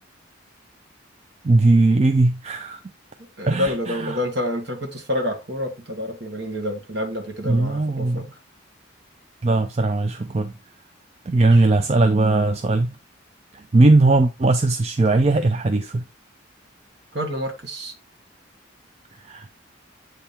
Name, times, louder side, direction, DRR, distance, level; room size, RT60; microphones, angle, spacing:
voice 1, 1.4-2.8 3.5-4.2 7.5-8.3 9.4-10.5 11.3-13.0 13.7-16.0 19.2-19.5, right 2 dB, 30° right, 0.4 m, -19 dB
voice 2, 3.4-8.2 11.4-11.6 17.1-17.9, left 1 dB, 55° right, 2.0 m, -28 dB
8.0 x 3.5 x 4.3 m
head